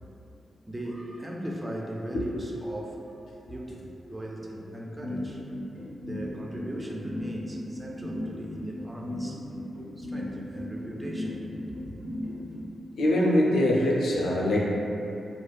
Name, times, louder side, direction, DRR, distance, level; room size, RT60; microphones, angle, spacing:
voice 1, 0.6-3.1 3.5-5.4 6.0-9.4 10.0-11.9, right 1 dB, 20° right, -1 dB, 0.3 m, -38 dB
sound 1, 5.0-12.6, left 1 dB, 75° right, 0.7 m, -35 dB
voice 2, 12.3-12.7 13.0-14.6, left 1 dB, 80° left, -4 dB, 0.4 m, -24 dB
2.4 x 2.3 x 2.2 m, 2.8 s
cardioid pair, 55°, 0 cm